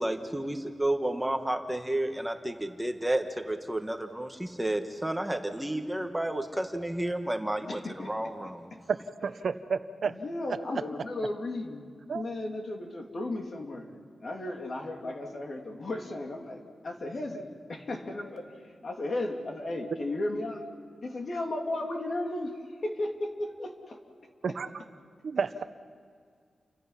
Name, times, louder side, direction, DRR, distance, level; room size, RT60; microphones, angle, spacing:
voice 1, 0.0-7.8 8.1-8.7, right 1 dB, 5° right, 5 dB, 1.3 m, -31 dB
voice 2, 7.7-8.3 10.0-11.9 12.1-13.9 14.2-18.5 18.8-20.6 21.0-22.5 22.8-24.0, left 2 dB, 50° left, 2 dB, 2.9 m, -35 dB
voice 3, 8.9-10.2 12.1-12.2 24.4-24.7 25.2-25.6, right 5 dB, 65° right, 11 dB, 0.9 m, -31 dB
30.0 x 25.0 x 5.8 m, 2.2 s
wide cardioid pair, 130°, 0 cm